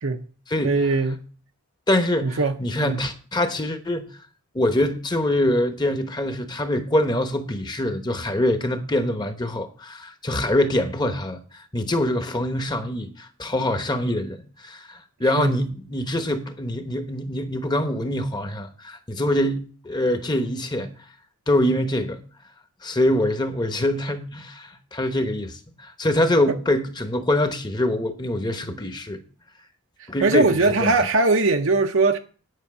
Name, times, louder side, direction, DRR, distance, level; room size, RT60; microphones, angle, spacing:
voice 1, 0.6-1.2 2.2-3.0 15.4-15.5 26.5-26.6 30.0-32.2, right 3 dB, 60° right, 0.7 m, -21 dB
voice 2, 1.9-4.1 4.5-20.9 21.5-22.2 22.8-29.2 30.1-30.9, left 1 dB, 20° left, 1.0 m, -24 dB
9.7 x 5.7 x 6.9 m
head